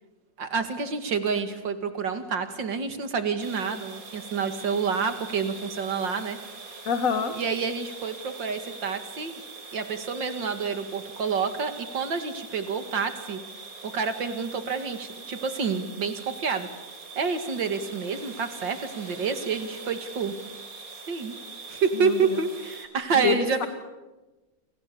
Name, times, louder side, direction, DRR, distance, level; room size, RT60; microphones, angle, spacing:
voice 1, 0.4-6.4 7.3-9.4 9.7-13.4 13.8-16.7 17.2-20.3 21.1-21.3 21.7-23.7, right 5 dB, 85° right, 8 dB, 2.9 m, -28 dB
sound 1, 3.4-22.9, right 4 dB, 50° right, 4.2 m, -43 dB
voice 2, 6.9-7.3 21.9-22.4 23.1-23.7, left 7 dB, 50° left, 8 dB, 1.8 m, -27 dB
29.5 x 27.0 x 7.0 m, 1.1 s
omnidirectional pair, 1.9 m